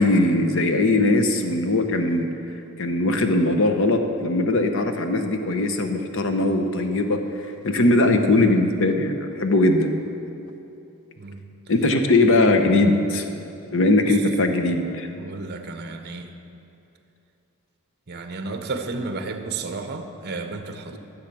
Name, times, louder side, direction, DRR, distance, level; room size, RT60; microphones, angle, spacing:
voice 1, 0.0-2.3 2.8-7.2 7.6-9.9 11.7-13.3 13.7-15.1, left 2 dB, 60° left, 6 dB, 0.9 m, -20 dB
voice 2, 15.1-16.3 18.1-21.0, right 3 dB, 50° right, 6 dB, 0.9 m, -32 dB
13.5 x 7.5 x 6.0 m, 2.8 s
head